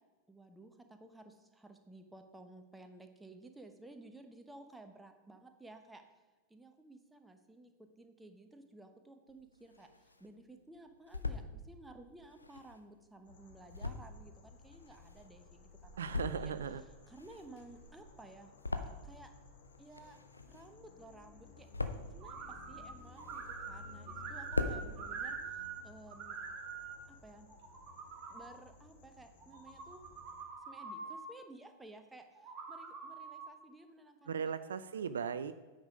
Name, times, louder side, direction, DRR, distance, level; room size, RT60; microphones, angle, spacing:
voice 1, 0.3-6.0 6.5-7.7 8.0-16.5 17.1-18.5 19.0-19.3 19.8-20.2 20.5-21.7 22.1-26.4 27.1-27.5 28.3-30.0 30.7-34.5, right 2 dB, 5° right, 6 dB, 0.9 m, -55 dB
sound 1, 9.3-10.3 10.8-11.5 12.2-15.5 15.9-16.7 16.9-19.4 19.6-20.9 21.2-22.2 22.7-23.8 24.1-24.2 24.4-24.8, left 3 dB, 80° left, 0.5 m, -40 dB
sound 2, 13.3-30.4, left 3 dB, 60° left, 1.1 m, -57 dB
voice 2, 16.0-16.8 34.3-35.5, right 7 dB, 65° right, 12 dB, 0.3 m, -37 dB
sound 3, 22.2-22.9 23.2-25.8 26.1-26.9 27.5-28.5 29.4-31.2 32.3-33.5, right 5 dB, 35° right, 1.7 m, -45 dB
9.1 x 5.1 x 5.3 m, 1.3 s
figure-of-eight pair, 90°, 0 cm